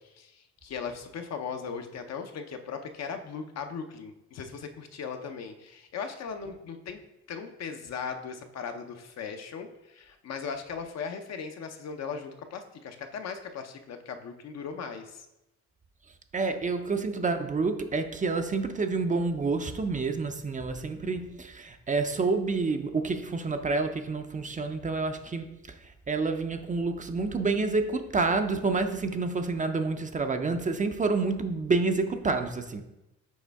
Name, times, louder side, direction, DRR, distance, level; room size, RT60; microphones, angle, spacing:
voice 1, 0.2-7.0 7.3-15.2, left 6 dB, 60° left, 6 dB, 0.7 m, -38 dB
voice 2, 16.3-25.5 26.1-32.8, right 3 dB, 25° right, 7 dB, 0.5 m, -28 dB
6.3 x 4.3 x 3.5 m, 0.92 s
cardioid pair, 90°, 30 cm